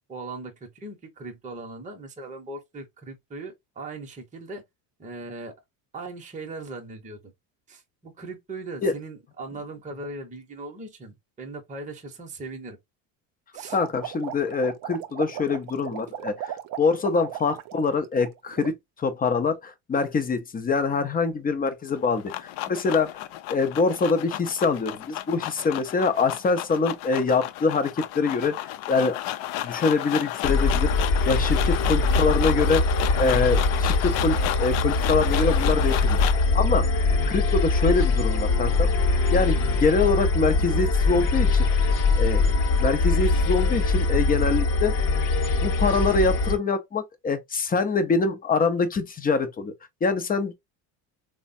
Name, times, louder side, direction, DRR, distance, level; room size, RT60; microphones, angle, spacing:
voice 1, 0.1-4.6 5.0-5.5 5.9-7.2 7.7-12.8 13.5-13.8, right 3 dB, 15° right, 0.7 m, -39 dB
sound 1, 13.5-17.9 18.2-18.7, right 11 dB, 45° right, 0.5 m, -36 dB
voice 2, 13.7-23.2 23.5-28.6 28.9-29.2 29.6-30.9 31.3-32.9 33.2-36.2 36.5-38.9 39.3-41.7 42.2-42.5 42.8-45.0 45.6-49.7 50.0-50.5, left 4 dB, 20° left, 0.5 m, -24 dB
sound 2, 21.9-36.5, left 14 dB, 75° left, 0.5 m, -32 dB
sound 3, 30.4-46.6, left 3 dB, 40° left, 0.8 m, -22 dB
3.2 x 2.1 x 2.5 m
supercardioid pair, 100°, 48 cm